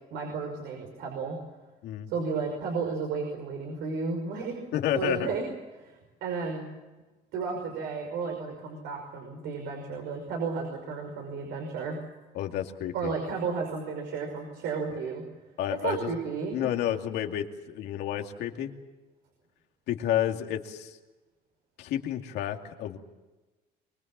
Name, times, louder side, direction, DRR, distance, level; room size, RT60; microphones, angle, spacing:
voice 1, 0.1-1.4 2.1-4.6 4.9-5.4 5.7-6.7 7.3-12.0 12.9-15.2 15.8-16.6, right 5 dB, 85° right, 2 dB, 5.6 m, -33 dB
voice 2, 4.7-5.3 12.3-13.1 15.6-16.1 16.5-18.7 19.9-20.9 21.8-23.0, left 11 dB, 80° left, 4 dB, 2.5 m, -30 dB
24.5 x 22.5 x 7.5 m, 1.2 s
cardioid pair, 110°, 17 cm